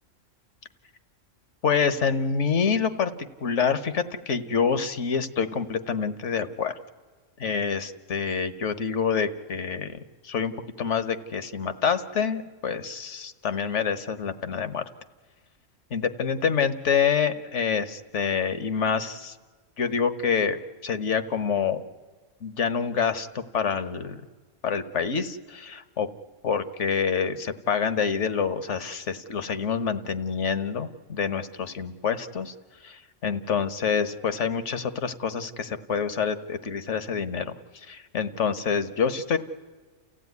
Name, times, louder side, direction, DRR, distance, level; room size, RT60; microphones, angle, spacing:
voice 1, 1.6-3.1 3.4-6.7 7.4-10.0 10.2-14.8 15.9-19.4 19.8-21.8 22.4-24.2 24.6-26.1 26.4-32.5 32.8-39.4, left 6 dB, 70° left, 12 dB, 1.5 m, -27 dB
30.0 x 15.5 x 9.5 m, 1.4 s
omnidirectional pair, 1.3 m